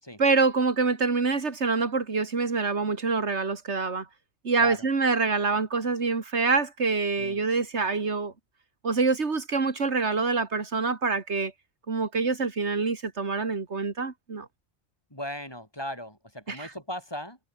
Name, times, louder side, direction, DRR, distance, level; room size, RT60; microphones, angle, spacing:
voice 1, 0.2-4.1 4.4-8.3 8.8-11.5 11.9-14.5 16.5-16.7, right 4 dB, 90° right, 2.5 m, -26 dB
voice 2, 15.1-17.4, equal, 20° left, 6.2 m, -37 dB
omnidirectional pair, 1.1 m